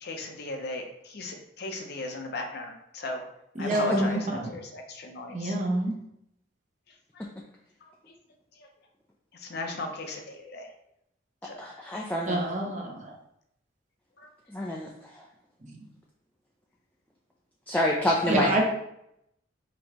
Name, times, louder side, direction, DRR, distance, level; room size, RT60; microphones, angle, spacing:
voice 1, 0.0-3.2 3.6-5.5 9.5-10.7 14.2-14.3, left 2 dB, 55° left, 3 dB, 0.6 m, -36 dB
voice 2, 3.5-4.5 5.3-5.9 12.3-13.1 15.6-15.8 18.3-18.6, right 1 dB, 40° right, 0 dB, 0.8 m, -27 dB
voice 3, 11.6-12.4 14.5-14.9 17.7-18.5, left 1 dB, 10° left, -2 dB, 0.4 m, -27 dB
5.2 x 3.0 x 2.9 m, 0.78 s
head